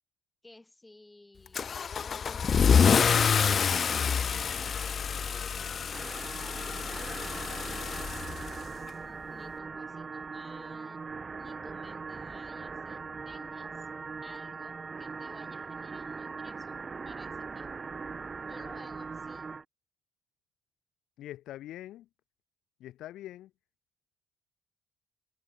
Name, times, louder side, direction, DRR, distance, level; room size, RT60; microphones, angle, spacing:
voice 1, 0.4-3.8 4.4-8.6 8.9-11.0 11.4-13.9 14.2-17.9 18.4-19.5, left 2 dB, 15° left, 6.1 m, -55 dB
Car / Engine starting / Accelerating revving vroom, 1.5-8.9, left 6 dB, 45° left, 0.3 m, -27 dB
sound 1, 5.9-19.6, right 4 dB, 30° right, 2.6 m, -40 dB
voice 2, 21.2-22.1 22.8-23.5, left 14 dB, 85° left, 2.1 m, -43 dB
cardioid pair, 110°, 0 cm